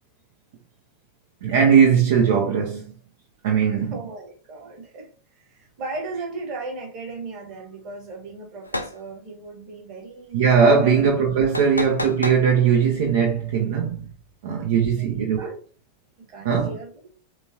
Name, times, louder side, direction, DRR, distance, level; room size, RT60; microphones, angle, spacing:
voice 1, 1.4-2.8 3.4-3.9 10.3-14.1 14.4-15.6 16.4-16.8, right 6 dB, 55° right, 0.6 m, -19 dB
voice 2, 3.7-10.4 10.8-11.0 14.4-15.6 16.2-17.0, right 3 dB, 40° right, 1.2 m, -37 dB
sound 1, 8.6-9.0 11.5-12.4, left 1 dB, 85° left, 0.4 m, -29 dB
3.5 x 2.9 x 2.7 m
figure-of-eight pair, 90°, 0 cm